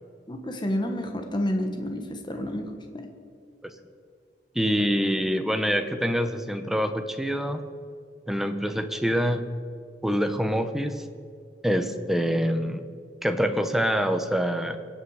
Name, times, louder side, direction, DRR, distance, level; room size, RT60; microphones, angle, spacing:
voice 1, 0.3-3.1, left 1 dB, 25° left, 4 dB, 1.3 m, -30 dB
voice 2, 4.5-7.6 8.3-9.4 10.0-11.0 11.6-12.8 13.2-14.8, equal, ahead, 7 dB, 0.8 m, -25 dB
24.0 x 8.8 x 4.9 m, 2.3 s
head